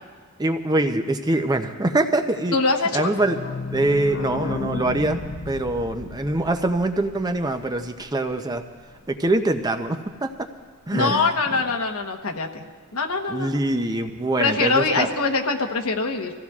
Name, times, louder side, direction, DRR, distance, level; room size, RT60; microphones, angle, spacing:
voice 1, 0.4-2.6 2.9-3.4 3.7-8.6 9.1-10.3 10.9-11.3 13.3-15.1, right 2 dB, 20° right, 7 dB, 0.5 m, -24 dB
voice 2, 2.5-3.1 10.9-12.6 12.9-13.6 14.4-16.3, left 4 dB, 80° left, 3 dB, 1.1 m, -23 dB
sound 1, 2.8-8.3 8.6-8.7 8.9-9.0 9.3-9.4, left 3 dB, 55° left, 0.6 m, -33 dB
26.0 x 15.0 x 2.4 m, 1.5 s
head